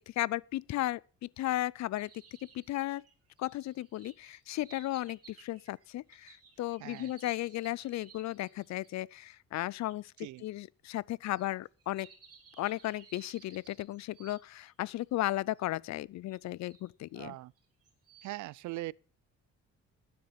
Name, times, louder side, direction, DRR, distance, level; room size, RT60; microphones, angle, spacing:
voice 1, 0.2-2.1 2.5-3.0 3.4-10.1 10.4-12.1 12.6-17.3, left 16 dB, 65° left, 0.5 m, -35 dB
sound 1, 1.9-8.9 9.8-10.0 11.3-15.0 15.6-15.7 16.3-16.9 17.6-18.4, right 6 dB, 50° right, 3.4 m, -58 dB
voice 2, 6.8-7.1 10.2-10.4 17.1-17.5 18.2-18.9, right 18 dB, 75° right, 0.5 m, -41 dB
12.5 x 9.5 x 5.7 m
cardioid pair, 90°, 30 cm